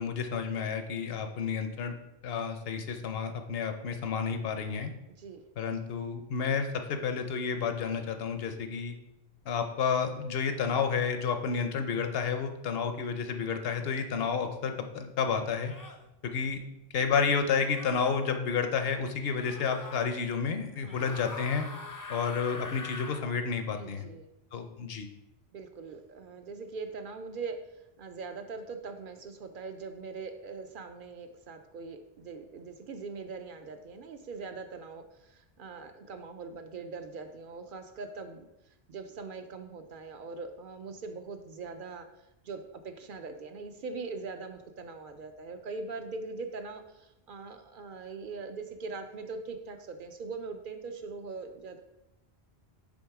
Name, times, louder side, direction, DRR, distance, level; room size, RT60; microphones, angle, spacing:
voice 1, 0.0-1.9 2.2-4.9 5.6-9.0 9.5-15.7 16.2-16.6 16.9-21.7 22.1-24.1 24.5-25.1, left 6 dB, 70° left, 7 dB, 0.9 m, -30 dB
sound 1, 15.6-16.0 17.5-18.2 19.3-20.1 20.8-23.3, left 3 dB, 30° left, 0.4 m, -43 dB
voice 2, 20.7-21.1 23.8-24.3 25.5-27.6 28.0-42.1 42.4-51.8, right 4 dB, 60° right, 7 dB, 0.6 m, -41 dB
6.3 x 3.6 x 4.7 m, 0.90 s
omnidirectional pair, 1.1 m